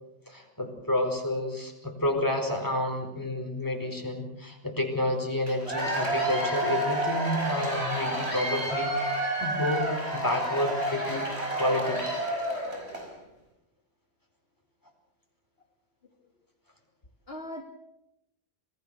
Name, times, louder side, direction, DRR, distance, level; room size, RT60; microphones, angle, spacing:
voice 1, 0.3-9.0 9.4-11.3 11.6-12.0, left 1 dB, 15° left, 2 dB, 4.5 m, -30 dB
Cheering / Applause / Crowd, 5.5-13.1, right 1 dB, 60° right, 6.0 m, -30 dB
voice 2, 10.5-11.3 17.3-17.6, left 1 dB, 55° left, 3 dB, 2.3 m, -37 dB
27.0 x 19.5 x 6.9 m, 0.84 s
omnidirectional pair, 1.2 m